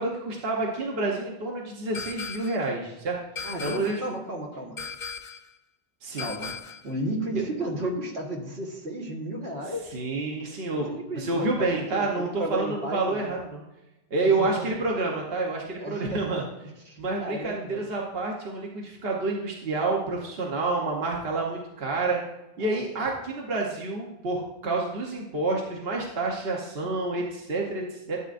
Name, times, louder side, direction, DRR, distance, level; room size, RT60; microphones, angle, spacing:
voice 1, 0.0-4.0 6.0-6.3 9.9-10.9 11.2-13.6 14.1-16.4 17.0-22.2 22.6-28.2, right 3 dB, 70° right, -1 dB, 1.2 m, -28 dB
sound 1, 1.9-2.7 3.4-4.1 4.8-5.5 6.2-6.9, left 6 dB, 55° left, 0.6 m, -37 dB
voice 2, 3.4-4.8 6.2-6.5 6.8-10.0 10.9-13.3 14.2-14.7 15.8-16.4 16.9-17.9 22.6-22.8, right 1 dB, 85° right, -1 dB, 1.8 m, -33 dB
12.5 x 8.2 x 2.5 m, 1.0 s
omnidirectional pair, 1.1 m